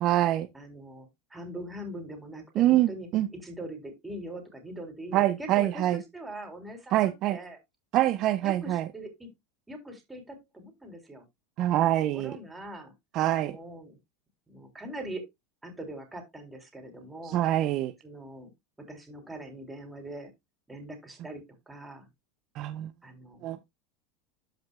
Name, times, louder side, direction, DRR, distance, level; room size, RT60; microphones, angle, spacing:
voice 1, 0.0-0.5 2.6-3.3 5.1-6.0 6.9-7.4 7.9-8.9 11.6-12.3 13.1-13.6 17.2-17.9 22.5-22.9 23.4-23.6, right 14 dB, 50° right, 0.7 m, -25 dB
voice 2, 0.5-7.0 7.3-7.6 8.4-9.3 9.7-11.2 12.1-12.9 13.4-14.0 14.5-15.3 15.6-17.4 18.0-18.5 18.9-20.3 20.7-22.1 23.0-23.6, right 1 dB, 10° right, 3.4 m, -42 dB
13.0 x 5.2 x 2.3 m
hypercardioid pair, 100°, 0 cm